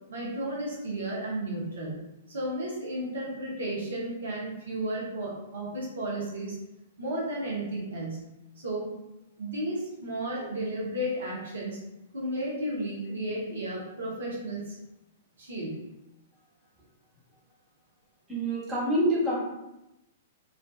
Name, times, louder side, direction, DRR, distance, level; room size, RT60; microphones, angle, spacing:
voice 1, 0.1-2.0 2.3-6.6 7.0-8.2 8.6-8.9 9.4-11.8 12.1-14.8 15.4-15.8, right 1 dB, 65° right, -5 dB, 0.7 m, -33 dB
voice 2, 18.3-19.3, right 1 dB, 10° right, -8 dB, 1.1 m, -26 dB
2.5 x 2.2 x 2.2 m, 0.91 s
figure-of-eight pair, 105°, 0 cm